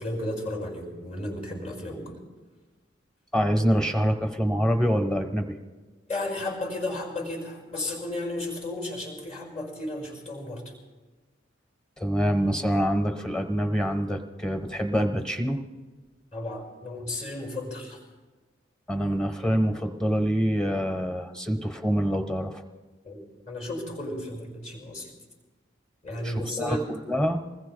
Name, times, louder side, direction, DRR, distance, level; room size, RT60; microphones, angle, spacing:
voice 1, 0.0-2.2 6.1-10.7 16.3-18.0 23.0-25.1 26.0-26.8, left 1 dB, 40° left, -2 dB, 5.5 m, -33 dB
voice 2, 3.3-5.6 12.0-15.6 18.9-22.6 26.2-26.8 27.1-27.4, equal, 5° left, 5 dB, 1.1 m, -25 dB
27.5 x 20.5 x 2.3 m, 1.3 s
head